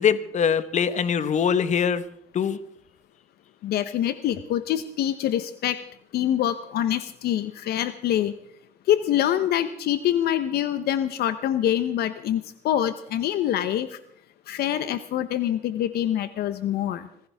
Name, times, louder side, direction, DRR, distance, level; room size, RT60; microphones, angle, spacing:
voice 1, 0.0-2.0 2.3-2.6, left 7 dB, 45° left, 13 dB, 1.3 m, -22 dB
voice 2, 3.6-5.8 6.1-8.3 8.9-14.0 14.5-17.1, left 11 dB, 70° left, 13 dB, 0.9 m, -25 dB
24.5 x 15.5 x 3.6 m, 0.69 s
cardioid pair, 110°, 17 cm